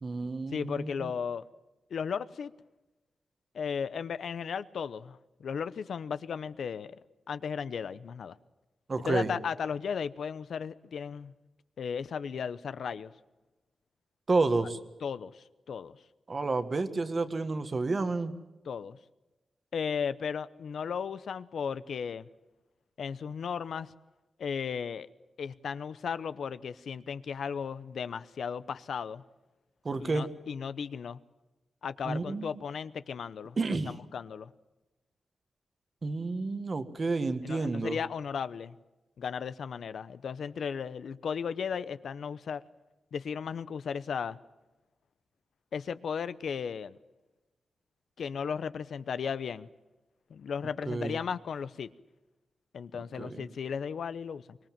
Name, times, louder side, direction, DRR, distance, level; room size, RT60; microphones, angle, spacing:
voice 1, 0.0-1.1 8.9-9.3 14.3-14.8 16.3-18.3 29.8-30.3 32.0-32.6 33.6-33.9 36.0-38.0 50.9-51.2 53.2-53.4, right 3 dB, 30° right, 1.6 m, -30 dB
voice 2, 0.5-1.5 1.9-2.5 3.5-7.0 7.3-8.4 9.0-11.3 11.8-13.1 15.0-16.0 18.7-19.0 19.7-22.3 23.0-23.9 24.4-25.1 25.4-29.2 30.0-31.2 31.8-33.6 33.9-34.5 37.4-38.8 39.2-42.6 43.1-44.4 45.7-47.0 48.2-49.7 50.3-51.9 52.7-54.6, left 6 dB, 70° left, 0.8 m, -35 dB
24.5 x 22.5 x 7.5 m
wide cardioid pair, 165°, 0 cm